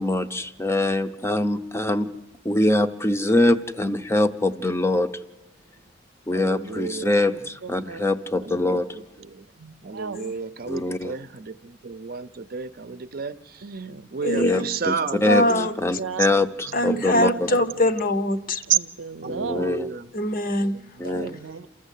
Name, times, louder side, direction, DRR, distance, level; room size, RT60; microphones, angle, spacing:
voice 1, 0.0-2.1 2.4-5.1 6.3-9.0 10.7-11.1 14.3-14.9 15.2-17.3 19.3-19.9 21.0-21.3, left 2 dB, 15° left, 0.7 m, -23 dB
voice 2, 6.3-7.1 8.4-9.5 9.8-15.2 16.7-17.9 19.2-20.1 20.6-21.4, right 4 dB, 50° right, 0.6 m, -34 dB
voice 3, 7.3-8.1 9.6-10.2 13.6-14.1 15.1-15.7 16.0-16.4 17.5-17.6 18.7-19.8 21.0-21.7, right 9 dB, 90° right, 0.6 m, -31 dB
voice 4, 14.2-14.7 15.2-15.7 16.7-18.6 20.1-20.8, left 1 dB, 50° left, 0.9 m, -23 dB
28.5 x 14.0 x 8.3 m
head